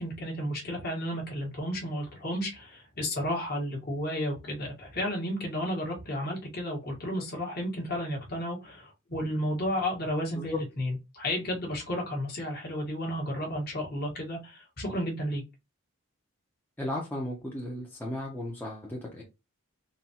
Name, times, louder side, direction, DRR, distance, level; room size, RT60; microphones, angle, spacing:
voice 1, 0.0-15.4, equal, 45° left, 1.2 m, -32 dB
voice 2, 16.8-19.2, left 1 dB, 10° left, 0.6 m, -35 dB
3.9 x 2.2 x 2.8 m
head